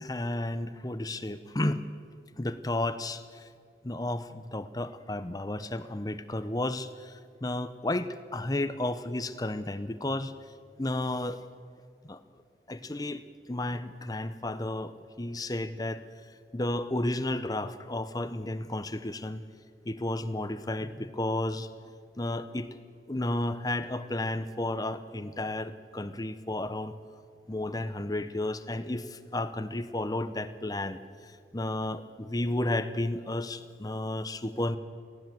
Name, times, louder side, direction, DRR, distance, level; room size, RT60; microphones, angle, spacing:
voice 1, 0.0-1.8 2.4-3.5 3.8-10.3 10.8-11.4 12.0-12.2 12.7-16.0 16.5-19.4 19.8-21.7 22.2-22.8 23.1-26.9 27.5-34.8, left 1 dB, 20° left, 12 dB, 0.7 m, -32 dB
23.0 x 16.0 x 7.7 m, 2.2 s
head